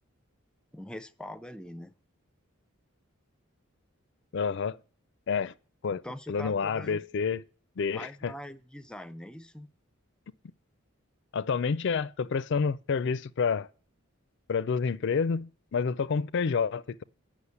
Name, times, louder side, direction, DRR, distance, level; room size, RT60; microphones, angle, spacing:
voice 1, 0.7-1.9 6.0-7.0 7.9-9.7, left 1 dB, 5° left, 0.5 m, -42 dB
voice 2, 4.3-4.8 5.3-5.5 5.8-6.0 6.3-7.4 7.8-8.3 11.3-13.7 14.5-17.0, left 5 dB, 60° left, 0.4 m, -29 dB
9.6 x 6.2 x 8.3 m
head